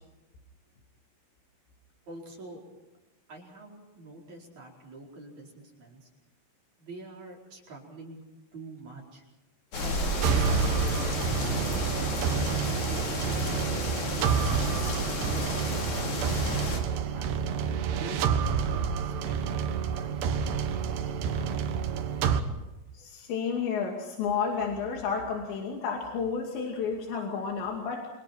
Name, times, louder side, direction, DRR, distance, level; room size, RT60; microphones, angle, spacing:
voice 1, 2.1-2.6 3.3-6.1 6.8-8.2 8.5-9.2 9.7-12.8 14.2-14.9 15.1-16.8 17.1-17.4 17.9-21.6, right 2 dB, 40° right, -1 dB, 5.9 m, -46 dB
sound 1, 9.7-16.8, left 2 dB, 45° left, 5.1 m, -32 dB
sound 2, 10.2-22.4, right 6 dB, 75° right, 3.5 m, -28 dB
voice 2, 22.9-28.1, left 6 dB, 85° left, 1 dB, 4.8 m, -31 dB
29.5 x 25.5 x 4.6 m, 1.0 s
omnidirectional pair, 5.0 m